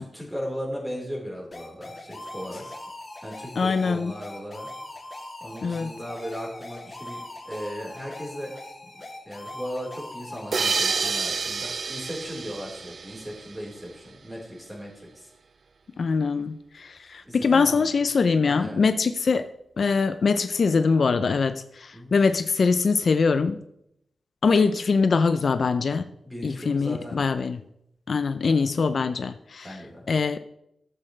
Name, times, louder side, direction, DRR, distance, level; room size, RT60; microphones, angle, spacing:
voice 1, 0.0-2.7 3.2-4.7 5.4-8.5 8.8-15.3 17.2-18.0 18.5-18.8 21.9-22.2 26.3-27.2 28.5-28.7 29.6-30.1, equal, 10° right, -2 dB, 4.2 m, -37 dB
sound 1, 1.5-11.1, left 2 dB, 25° left, 2.8 m, -41 dB
voice 2, 3.6-4.1 5.6-5.9 16.0-19.5 19.8-23.6 24.4-26.1 26.4-27.6 28.1-29.8 30.1-30.4, left 4 dB, 65° left, 11 dB, 0.5 m, -23 dB
sound 2, 10.5-13.8, right 5 dB, 60° right, 0.3 m, -29 dB
12.5 x 7.8 x 3.3 m, 0.78 s
cardioid pair, 65°, 0 cm